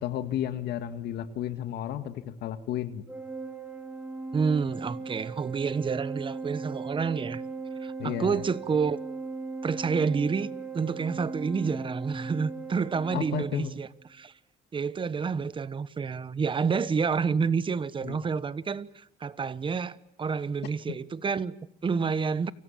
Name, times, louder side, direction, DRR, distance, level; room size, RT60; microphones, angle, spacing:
voice 1, 0.0-3.0 8.0-8.4 13.1-13.7 18.0-18.2, left 11 dB, 75° left, 1.9 m, -32 dB
Organ, 3.1-13.8, right 4 dB, 10° right, 4.6 m, -38 dB
voice 2, 4.3-7.4 7.8-9.0 9.6-14.3 14.7-22.5, right 5 dB, 30° right, 1.2 m, -29 dB
30.0 x 25.0 x 7.4 m
cardioid pair, 110°, 17 cm